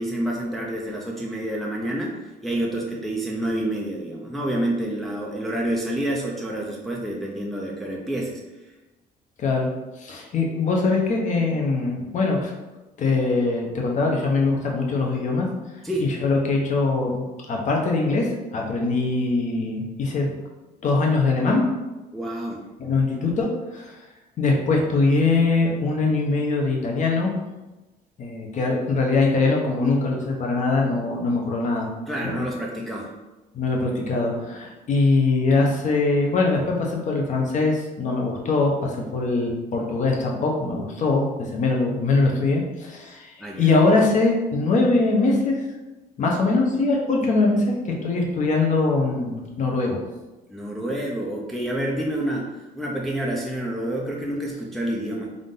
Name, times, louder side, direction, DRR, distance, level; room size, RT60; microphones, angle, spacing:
voice 1, 0.0-8.4 15.8-16.1 22.1-22.6 32.1-33.1 43.4-43.7 50.5-55.3, right 1 dB, ahead, -2 dB, 0.5 m, -28 dB
voice 2, 9.4-9.7 10.0-12.5 13.0-15.5 16.0-20.4 20.8-21.6 22.8-24.0 24.4-27.3 28.2-31.9 32.2-32.5 33.5-45.6 46.2-50.0, left 3 dB, 45° left, 0 dB, 0.9 m, -22 dB
3.7 x 2.6 x 3.7 m, 1.1 s
cardioid pair, 110°, 17 cm